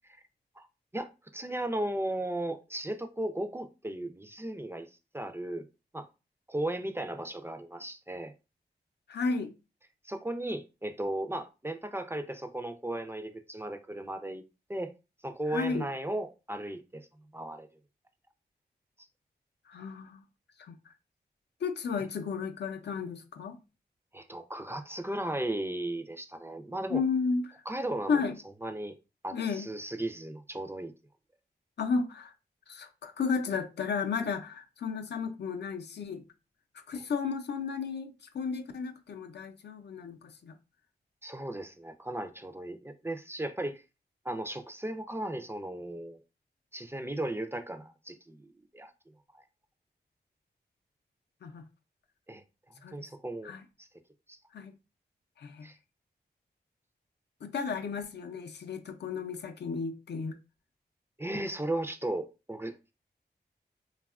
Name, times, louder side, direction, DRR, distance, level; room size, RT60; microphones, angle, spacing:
voice 1, 0.9-4.9 5.1-5.7 5.9-6.1 6.5-8.3 10.0-14.4 14.7-14.9 15.2-17.1 17.3-17.7 24.1-27.0 27.7-28.2 28.6-29.0 29.2-30.9 36.9-37.0 41.2-43.8 44.2-46.2 46.7-48.9 49.3-49.4 52.3-52.4 52.8-53.5 53.8-53.9 54.3-54.4 55.6-55.8 61.2-62.9, right 1 dB, 15° right, 0.4 m, -36 dB
voice 2, 9.1-9.5 15.5-15.9 19.7-20.2 20.6-20.8 21.6-23.6 26.9-27.6 28.1-28.4 29.3-29.7 31.8-32.3 32.7-36.2 36.9-40.5 51.4-51.6 52.8-53.0 53.4-53.6 54.5-54.7 55.4-55.7 57.4-60.4, left 5 dB, 75° left, 0.4 m, -33 dB
2.7 x 2.3 x 2.3 m
cardioid pair, 50°, 18 cm